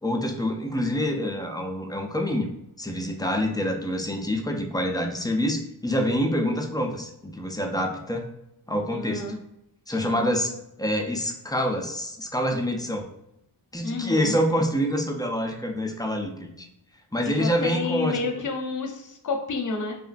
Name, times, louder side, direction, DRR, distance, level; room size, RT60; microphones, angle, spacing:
voice 1, 0.0-2.5 2.8-8.3 8.7-9.3 9.9-10.5 10.8-13.1 13.7-16.7 17.1-18.2, equal, 10° left, 2 dB, 0.4 m, -26 dB
voice 2, 8.9-9.4 9.9-10.2 13.8-14.4 17.2-20.0, left 4 dB, 45° left, 3 dB, 0.7 m, -30 dB
2.9 x 2.4 x 2.4 m, 0.83 s
cardioid pair, 60°, 44 cm